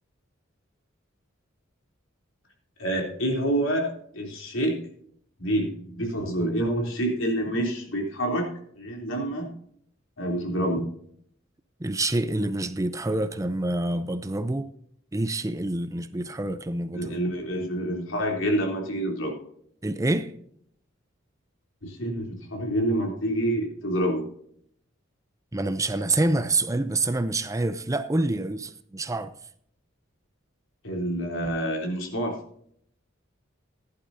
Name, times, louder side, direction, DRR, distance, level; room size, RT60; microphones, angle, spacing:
voice 1, 2.8-4.8 5.4-8.5 8.8-9.5 10.2-10.9 16.9-19.3 21.8-24.3 30.8-32.4, right 1 dB, 75° left, 3.3 m, -27 dB
voice 2, 11.8-14.7 15.1-17.1 19.8-20.3 25.5-29.3, right 2 dB, 15° right, 0.5 m, -27 dB
15.5 x 11.5 x 2.8 m
head